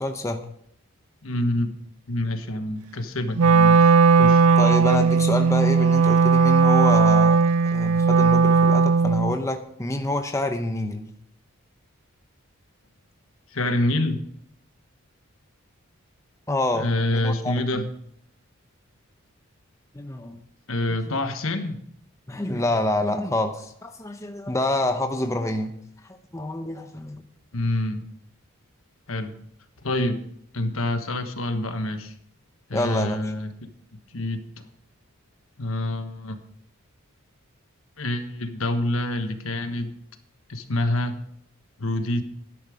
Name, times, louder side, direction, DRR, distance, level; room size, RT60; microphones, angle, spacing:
voice 1, 0.0-0.4 4.6-11.1 16.5-17.8 19.9-20.4 22.3-25.7 26.1-27.2 32.7-33.3, left 1 dB, 15° left, 6 dB, 0.7 m, -27 dB
voice 2, 1.2-1.7 2.1-4.5 13.5-14.2 16.7-17.9 20.7-21.8 27.5-28.0 29.1-29.3 29.8-30.2 30.5-32.1 32.7-33.5 34.1-34.6 35.6-36.4 38.0-39.9 40.5-41.1 41.8-42.2, left 1 dB, 70° left, 8 dB, 1.3 m, -27 dB
Wind instrument woodwind instrument, 3.4-9.4, right 5 dB, 85° right, 0.5 m, -17 dB
12.0 x 11.0 x 5.0 m, 0.70 s
head